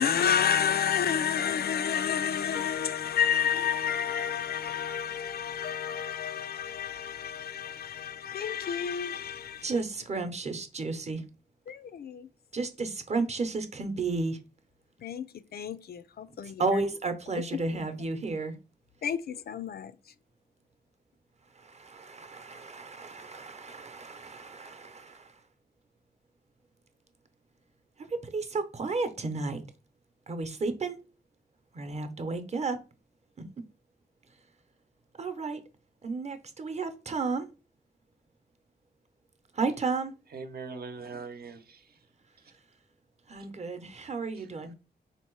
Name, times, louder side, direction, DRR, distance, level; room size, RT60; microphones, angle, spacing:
voice 1, 0.0-9.7 11.7-12.3 15.0-15.3 15.5-16.6 19.0-19.9, left 8 dB, 70° left, 0.4 m, -30 dB
voice 2, 9.6-11.2 12.5-14.4 16.6-18.5 21.6-25.3 28.1-29.6 30.3-31.0 31.7-32.8 35.2-35.6 36.0-37.5 39.5-40.1 43.3-44.7, right 3 dB, 40° right, 0.8 m, -32 dB
voice 3, 40.3-42.0 42.4-42.5 44.3-44.5, right 4 dB, 65° right, 0.8 m, -42 dB
3.8 x 2.9 x 4.6 m
wide cardioid pair, 100°, 17 cm